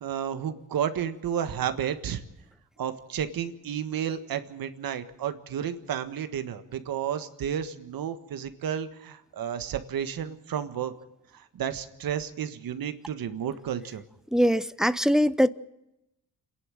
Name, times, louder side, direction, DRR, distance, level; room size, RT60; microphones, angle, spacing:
voice 1, 0.0-2.2 2.8-10.9 11.3-14.0, right 9 dB, 70° right, 1.7 m, -32 dB
voice 2, 14.3-15.5, equal, ahead, 0.7 m, -22 dB
27.5 x 11.0 x 9.2 m
cardioid pair, 90°, 36 cm